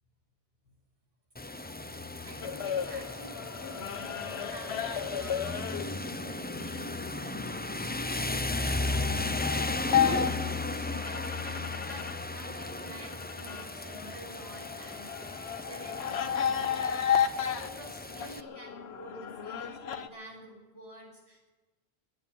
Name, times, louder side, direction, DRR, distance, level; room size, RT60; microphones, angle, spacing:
Rain, 1.4-18.4, left 2 dB, 15° left, 0.3 m, -35 dB
voice 1, 2.2-21.5, equal, 25° right, -6 dB, 3.8 m, -49 dB
sound 1, 2.4-12.2 12.5-20.1, left 8 dB, 85° left, 1.1 m, -34 dB
13.0 x 11.0 x 10.0 m, 1.2 s
omnidirectional pair, 1.1 m